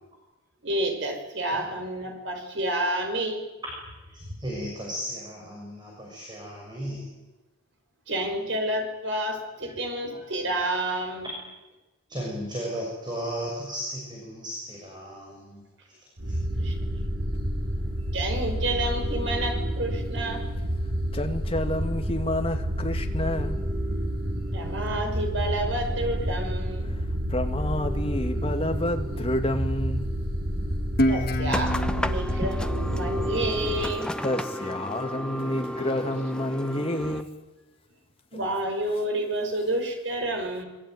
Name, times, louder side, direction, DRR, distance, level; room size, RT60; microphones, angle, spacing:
voice 1, 0.6-3.4 4.2-4.4 8.1-11.3 16.6-16.7 18.1-20.5 24.5-26.9 31.1-34.1 38.3-40.7, right 1 dB, 60° right, 5.6 m, -29 dB
voice 2, 4.1-7.1 9.6-9.7 10.1-10.2 12.1-15.6 15.9-16.0 16.3-16.4, equal, 20° right, 6.1 m, -35 dB
sound 1, 16.2-33.9, equal, 80° right, 7.3 m, -29 dB
voice 3, 21.1-23.6 26.9-27.0 27.3-30.1 34.2-37.3, left 1 dB, 25° left, 2.1 m, -29 dB
Guitar, 31.0-34.2, equal, 45° left, 1.4 m, -29 dB
sound 2, 31.5-37.2, equal, 5° left, 0.8 m, -33 dB
26.5 x 22.0 x 9.3 m
head